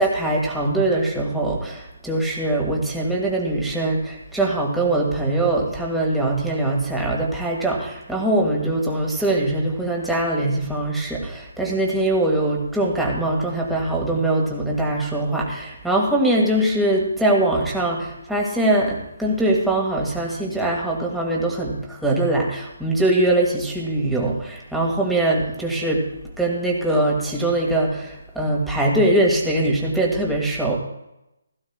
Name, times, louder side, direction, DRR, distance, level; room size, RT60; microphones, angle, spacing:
voice 1, 0.0-26.1 26.4-30.8, right 1 dB, 5° right, -3 dB, 2.2 m, -22 dB
16.5 x 14.5 x 2.4 m, 0.88 s
figure-of-eight pair, 145°, 0 cm